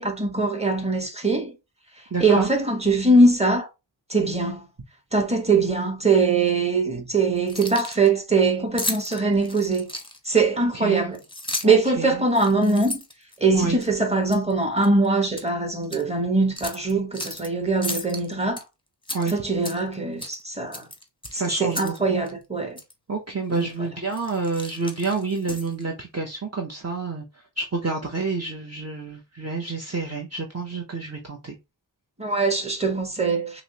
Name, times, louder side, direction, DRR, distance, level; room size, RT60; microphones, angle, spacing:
voice 1, 0.0-1.5 2.2-3.7 4.1-4.6 5.1-9.9 10.2-11.2 11.6-13.0 13.4-18.6 19.3-20.9 21.3-22.8 23.5-23.9 32.2-33.6, right 3 dB, 15° right, 1.2 m, -22 dB
voice 2, 2.1-2.5 10.7-11.0 11.6-12.1 13.5-13.8 19.1-19.3 21.3-22.2 23.1-27.2 27.6-31.5, right 4 dB, 35° right, 0.7 m, -28 dB
Keys jangling, 7.4-8.1 8.8-10.4 11.1-11.9 12.3-13.9 14.3-14.5 14.8-15.5 15.8-16.0 16.6-17.5 17.8-18.6 19.0-19.9 20.2-20.4 20.7-22.0 22.3-22.4 22.8-22.9 23.5-23.7 24.1-25.8, left 1 dB, 10° left, 0.8 m, -34 dB
5.8 x 2.0 x 2.8 m
wide cardioid pair, 60°, 44 cm